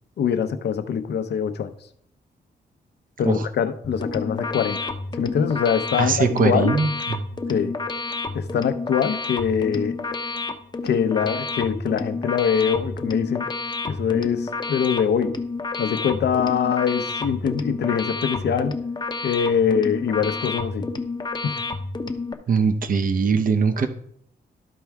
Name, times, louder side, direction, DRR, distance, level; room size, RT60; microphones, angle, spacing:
voice 1, 0.2-1.7 3.2-4.9 5.2-6.7 7.5-7.8 8.3-10.0 10.8-13.5 13.9-15.4 15.8-18.8 19.2-20.9 21.4-21.6, left 7 dB, 75° left, 0.7 m, -23 dB
sound 1, 3.8-22.3, left 3 dB, 25° left, 0.7 m, -30 dB
voice 2, 6.0-7.2 22.5-23.9, right 5 dB, 50° right, 0.7 m, -21 dB
12.5 x 4.5 x 3.5 m
cardioid pair, 105°, 18 cm